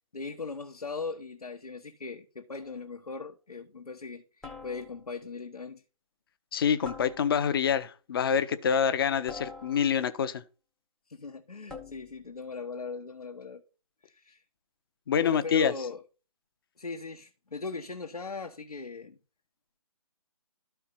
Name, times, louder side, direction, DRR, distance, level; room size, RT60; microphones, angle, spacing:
voice 1, 0.1-5.8 11.1-13.6 14.0-14.4 15.2-16.0 16.8-19.2, left 4 dB, 85° left, 1.2 m, -39 dB
sound 1, 2.6-3.0 4.4-5.2 6.8-7.7 9.3-10.2 11.7-12.3, left 3 dB, 5° left, 0.6 m, -46 dB
voice 2, 6.5-10.4 15.1-15.7, left 7 dB, 40° left, 0.7 m, -26 dB
12.5 x 4.5 x 5.5 m
figure-of-eight pair, 145°, 19 cm